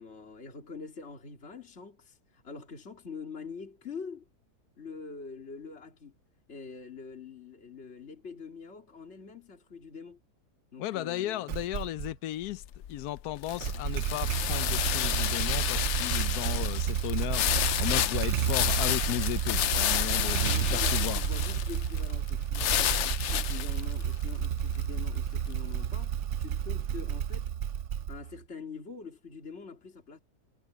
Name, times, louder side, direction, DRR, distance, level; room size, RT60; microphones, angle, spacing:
voice 1, 0.0-4.3 4.8-6.2 6.5-10.2 10.7-11.5 20.2-27.5 28.1-30.2, left 5 dB, 45° left, 2.8 m, -45 dB
voice 2, 10.8-12.6 12.9-21.2, left 14 dB, 80° left, 1.1 m, -35 dB
Motorcycle / Engine starting, 11.5-12.1 13.5-28.4, right 9 dB, 60° right, 0.8 m, -31 dB
sound 1, 12.4-25.7, left 12 dB, 65° left, 0.7 m, -31 dB
omnidirectional pair, 1.6 m